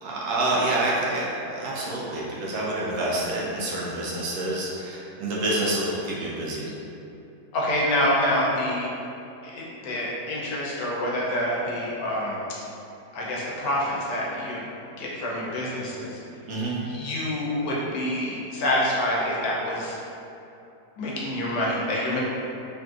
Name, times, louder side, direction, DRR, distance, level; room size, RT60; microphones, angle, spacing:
voice 1, 0.0-6.7 16.5-16.8, right 1 dB, 75° right, -5 dB, 1.0 m, -27 dB
voice 2, 7.5-8.9 9.4-12.4 13.1-14.6 15.0-16.2 16.8-20.0 21.0-22.2, left 1 dB, 85° left, -5 dB, 1.3 m, -27 dB
3.6 x 2.6 x 2.3 m, 2.8 s
omnidirectional pair, 1.8 m